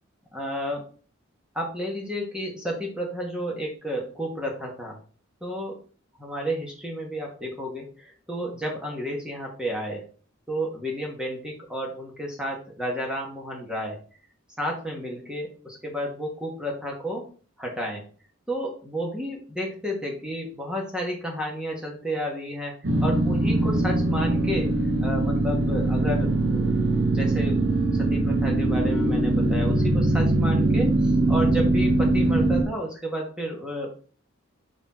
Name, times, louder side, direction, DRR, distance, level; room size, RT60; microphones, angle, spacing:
voice 1, 0.3-0.9 1.5-5.0 5.4-5.8 6.2-10.1 10.5-14.0 14.6-17.2 17.6-18.0 18.5-22.7 23.0-24.7 25.0-27.6 28.0-33.9, equal, 5° right, -1 dB, 1.4 m, -31 dB
sound 1, 22.8-32.6, right 2 dB, 60° right, 1.1 m, -22 dB
6.9 x 3.9 x 4.2 m, 0.40 s
head